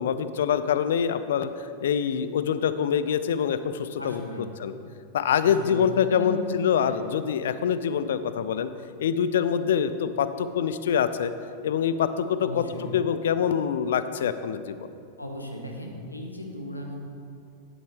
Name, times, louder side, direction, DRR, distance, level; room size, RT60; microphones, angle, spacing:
voice 1, 0.0-4.2 4.6-4.7 5.1-8.7 9.0-11.3 11.6-12.6 12.9-14.9, left 8 dB, 60° left, 12 dB, 0.4 m, -25 dB
voice 2, 4.0-4.5 5.4-5.7 6.1-6.5 6.8-7.0 12.4-12.9 15.2-16.9, left 1 dB, 85° left, 2 dB, 1.1 m, -36 dB
10.5 x 8.0 x 3.5 m, 2.4 s
figure-of-eight pair, 90°, 0 cm